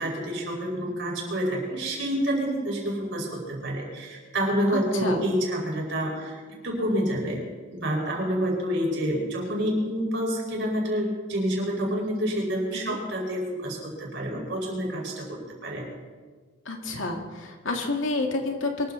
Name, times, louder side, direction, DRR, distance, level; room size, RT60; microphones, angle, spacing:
voice 1, 0.0-7.4 7.7-15.8, equal, 60° right, -1 dB, 5.1 m, -28 dB
voice 2, 4.7-5.2 12.7-13.0 16.7-18.9, left 2 dB, 75° left, 2 dB, 2.3 m, -29 dB
23.5 x 13.5 x 4.1 m, 1.5 s
head